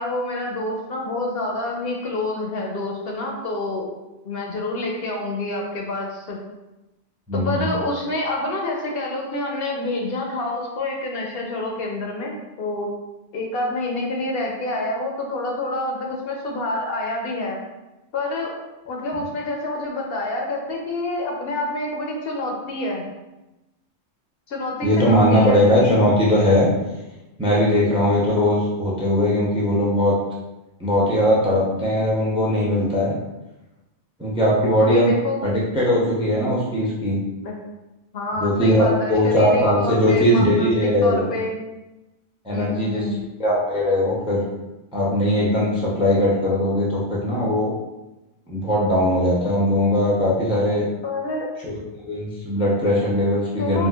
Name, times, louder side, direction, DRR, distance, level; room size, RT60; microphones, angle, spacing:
voice 1, 0.0-3.9 4.2-6.4 7.3-12.9 13.3-17.6 18.1-18.6 18.9-23.1 24.5-26.0 34.6-35.4 37.4-37.5 38.1-41.6 42.5-43.3 51.0-51.5 52.5-52.7 53.6-53.9, left 2 dB, 65° left, 0 dB, 0.7 m, -27 dB
voice 2, 7.3-7.7 24.8-26.7 27.4-30.2 30.8-33.1 34.2-35.1 35.4-37.2 38.4-41.3 42.4-43.1 43.4-44.4 44.9-47.7 48.5-50.8 51.6-53.9, left 1 dB, 10° right, -5 dB, 0.3 m, -19 dB
3.6 x 2.2 x 2.2 m, 1.0 s
omnidirectional pair, 1.1 m